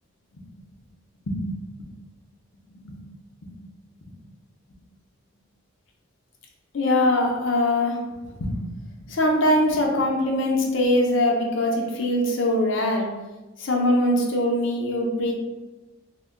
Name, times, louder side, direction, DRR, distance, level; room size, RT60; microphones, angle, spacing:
voice 1, 6.7-8.0 8.4-8.7 9.0-13.1 13.6-15.3, left 1 dB, 60° left, 0 dB, 0.5 m, -22 dB
2.1 x 2.1 x 3.5 m, 1.1 s
head